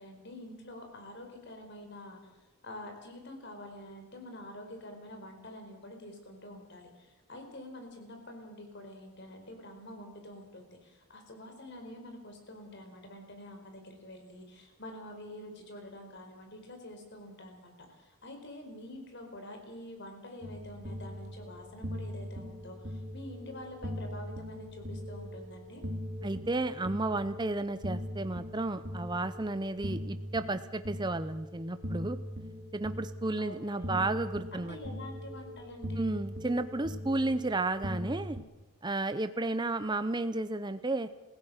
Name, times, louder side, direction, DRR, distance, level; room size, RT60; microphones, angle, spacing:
voice 1, 0.0-2.2 2.6-25.8 33.4-34.0 34.5-36.1, left 1 dB, 50° left, 4 dB, 4.6 m, -47 dB
sound 1, 20.4-38.4, equal, 45° right, 2.3 m, -41 dB
voice 2, 26.2-32.2 32.7-34.8 36.0-38.4 38.8-41.1, right 2 dB, 20° right, 11 dB, 0.6 m, -32 dB
27.5 x 16.5 x 6.5 m, 1.1 s
head